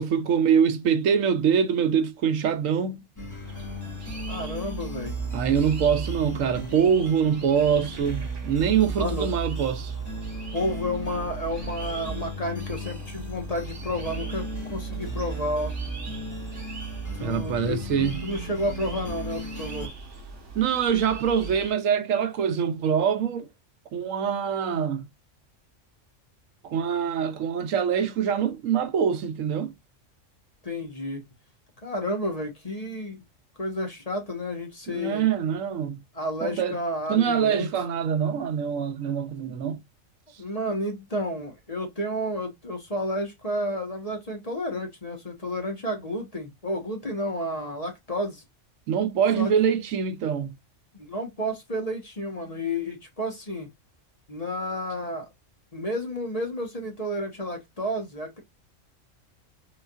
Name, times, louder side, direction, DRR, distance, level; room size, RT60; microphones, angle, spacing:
voice 1, 0.0-3.0 5.3-9.9 17.2-18.2 20.5-23.5 23.9-25.1 26.6-29.7 34.9-36.0 36.4-36.8 37.1-39.8 48.9-50.5, right 7 dB, 85° right, 1.1 m, -24 dB
sound 1, 3.2-19.9, right 2 dB, 15° left, 1.9 m, -35 dB
sound 2, 3.4-21.7, right 3 dB, 65° right, 1.8 m, -41 dB
voice 2, 4.3-5.2 9.0-9.3 10.5-15.7 17.2-19.9 30.6-31.2 31.8-33.2 33.6-35.3 36.1-37.7 40.4-48.4 49.3-49.5 51.0-53.7 54.3-55.3 55.7-58.4, left 1 dB, 30° left, 1.4 m, -31 dB
5.4 x 3.9 x 2.5 m
omnidirectional pair, 1.3 m